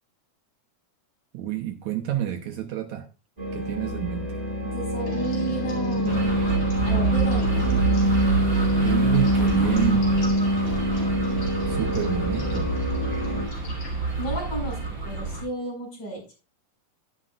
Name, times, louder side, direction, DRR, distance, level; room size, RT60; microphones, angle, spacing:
voice 1, 1.3-3.1 3.5-4.4 8.8-10.1 11.7-12.7, right 12 dB, 70° right, 3 dB, 2.2 m, -29 dB
sound 1, 3.4-13.4, equal, 15° right, 5.4 m, -25 dB
voice 2, 4.6-6.4 6.9-7.8 14.2-14.8 15.0-16.2, right 1 dB, 35° left, -2 dB, 6.4 m, -33 dB
sound 2, 5.1-14.9, left 4 dB, 55° left, 4.6 m, -41 dB
sound 3, 6.0-15.4, right 5 dB, 35° right, 6.5 m, -28 dB
11.5 x 11.0 x 2.5 m, 0.31 s
omnidirectional pair, 3.6 m